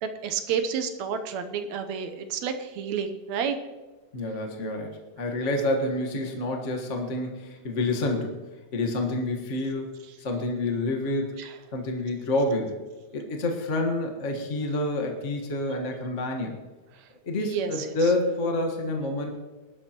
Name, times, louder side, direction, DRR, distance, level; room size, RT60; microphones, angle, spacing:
voice 1, 0.0-3.6 11.4-11.5 17.4-17.9, right 7 dB, 75° right, 8 dB, 2.1 m, -30 dB
voice 2, 4.1-8.4 8.7-9.9 10.2-11.4 11.7-12.8 13.1-16.5 17.2-19.3, left 2 dB, 40° left, 2 dB, 1.1 m, -28 dB
19.5 x 12.0 x 3.0 m, 1.2 s
omnidirectional pair, 3.5 m